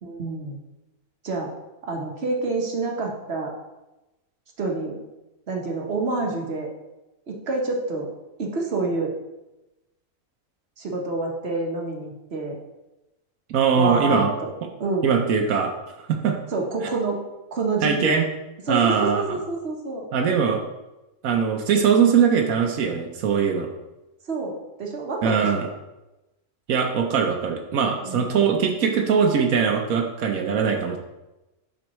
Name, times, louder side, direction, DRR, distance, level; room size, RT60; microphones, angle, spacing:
voice 1, 0.0-0.6 1.2-1.5 1.8-3.5 4.6-4.9 5.5-6.7 7.3-8.1 8.4-9.1 10.8-12.6 13.8-14.5 14.8-15.1 16.5-17.2 17.5-18.2 18.7-20.1 24.3-25.7 28.0-28.3, right 3 dB, 50° right, 0 dB, 1.2 m, -28 dB
voice 2, 13.5-14.3 15.0-15.7 16.0-16.4 17.8-18.3 18.7-19.4 20.1-20.6 21.2-23.7 25.2-25.6 26.7-31.0, right 6 dB, 85° right, 3 dB, 1.2 m, -21 dB
7.6 x 5.4 x 3.1 m, 1.0 s
omnidirectional pair, 1.4 m